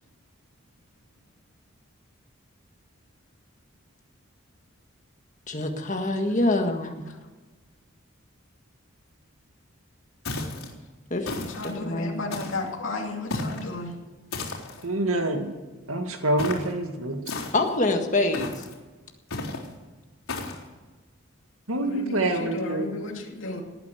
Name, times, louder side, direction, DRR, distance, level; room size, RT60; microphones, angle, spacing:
voice 1, 5.5-7.0 11.1-12.3 17.5-18.6, left 2 dB, 35° left, 4 dB, 1.7 m, -26 dB
sound 1, 10.3-10.7 11.2-11.7 12.3-12.7 13.3-13.7 14.3-14.8 16.4-16.7 17.3-17.8 18.3-18.7 19.3-19.7 20.3-20.6, left 3 dB, 85° left, 3.8 m, -34 dB
voice 2, 11.4-13.9 21.8-23.6, left 2 dB, 70° left, 0 dB, 2.6 m, -34 dB
voice 3, 14.8-15.5 15.9-17.2 21.7-22.9, right 1 dB, 90° right, 5 dB, 2.1 m, -26 dB
18.5 x 9.4 x 8.1 m, 1.3 s
head